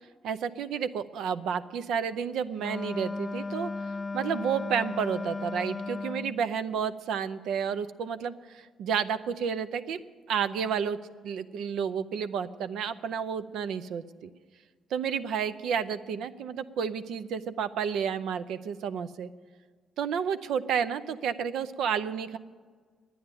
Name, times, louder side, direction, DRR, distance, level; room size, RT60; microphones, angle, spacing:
voice 1, 0.2-3.7 4.1-10.0 10.3-11.0 11.2-14.3 14.9-19.3 20.0-22.4, right 7 dB, 80° right, 12 dB, 0.5 m, -31 dB
Wind instrument woodwind instrument, 2.6-6.4, left 3 dB, 25° left, 0.3 m, -35 dB
10.5 x 9.4 x 8.9 m, 1.6 s
cardioid pair, 90°, 0 cm